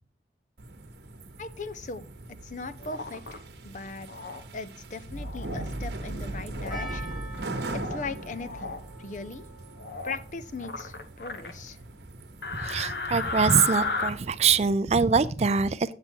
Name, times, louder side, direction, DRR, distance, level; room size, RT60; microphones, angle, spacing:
sound 1, 0.6-14.7, right 2 dB, 75° right, 1.1 m, -40 dB
voice 1, 1.4-2.0 2.3-4.1 4.5-7.5 7.9-9.4 10.0-11.8, left 3 dB, 45° left, 0.5 m, -39 dB
sound 2, 2.8-3.4 4.1-4.4 5.1-5.7 6.6-7.0 7.4-8.0 8.4-8.8 9.8-10.2 10.6-11.5 12.4-14.1, left 3 dB, 65° left, 0.9 m, -33 dB
Percussion, 6.7-11.9, right 1 dB, 5° right, 1.2 m, -46 dB
voice 2, 12.5-15.9, right 5 dB, 35° right, 0.4 m, -24 dB
8.5 x 6.8 x 4.4 m
head